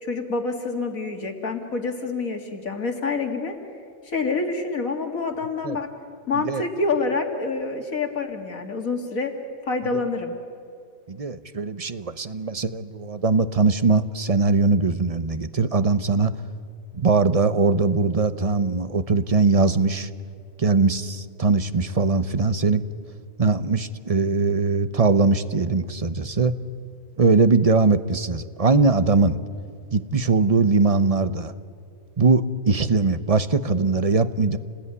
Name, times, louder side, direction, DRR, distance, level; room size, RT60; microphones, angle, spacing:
voice 1, 0.0-3.5 4.0-5.9 6.3-9.3 9.7-10.3, left 3 dB, 70° left, 4 dB, 2.7 m, -27 dB
voice 2, 11.1-16.3 16.9-20.1 20.6-22.8 23.4-26.5 27.2-29.4 29.9-31.5 32.2-34.6, right 4 dB, 30° right, 12 dB, 0.8 m, -21 dB
29.0 x 19.5 x 9.8 m, 2.3 s
omnidirectional pair, 1.5 m